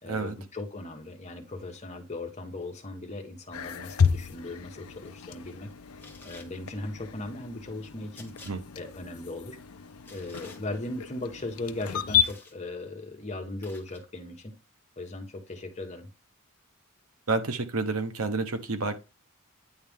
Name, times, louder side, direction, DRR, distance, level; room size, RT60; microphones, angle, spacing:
voice 1, 0.0-5.7 6.2-8.3 8.7-9.6 10.1-14.5 15.0-16.1, left 2 dB, 30° left, 1.2 m, -38 dB
sound 1, 3.5-12.3, left 7 dB, 80° left, 0.5 m, -32 dB
sound 2, 3.9-4.2 6.0-6.5 8.1-8.5 10.0-10.6 12.2-12.6 13.6-14.0, left 3 dB, 10° left, 1.4 m, -50 dB
voice 2, 17.3-19.0, right 3 dB, 80° right, 1.0 m, -29 dB
9.5 x 3.3 x 3.6 m
head